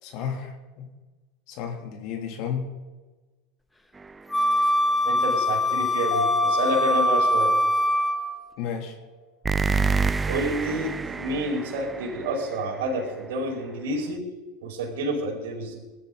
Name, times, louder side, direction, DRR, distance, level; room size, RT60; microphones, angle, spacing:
voice 1, 0.0-0.9 1.5-2.7 8.6-9.0, left 7 dB, 55° left, 3 dB, 2.7 m, -32 dB
sound 1, 3.9-4.7 9.4-13.1, right 4 dB, 15° right, 0.6 m, -28 dB
Wind instrument woodwind instrument, 4.3-8.4, left 1 dB, 10° left, 1.2 m, -23 dB
voice 2, 5.0-7.5 10.3-14.2 14.6-15.7, right 1 dB, 65° right, 0 dB, 4.8 m, -29 dB
Mallet percussion, 6.1-8.6, left 5 dB, 70° left, 5.8 m, -33 dB
20.0 x 11.5 x 3.9 m, 1.2 s
hypercardioid pair, 80°, 0 cm